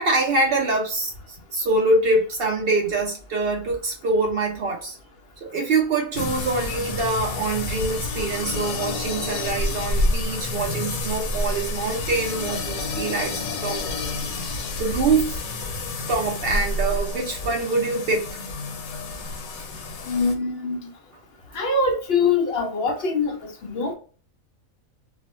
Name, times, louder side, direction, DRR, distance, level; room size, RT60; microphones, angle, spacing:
voice 1, 0.0-5.0 5.4-14.0 14.3-15.4 16.1-18.4, right 3 dB, 65° right, 0.5 m, -25 dB
sound 1, 6.1-20.3, left 2 dB, 80° left, 1.1 m, -29 dB
voice 2, 20.0-20.9 21.5-23.9, left 4 dB, 65° left, 0.6 m, -23 dB
2.4 x 2.1 x 3.0 m
omnidirectional pair, 1.5 m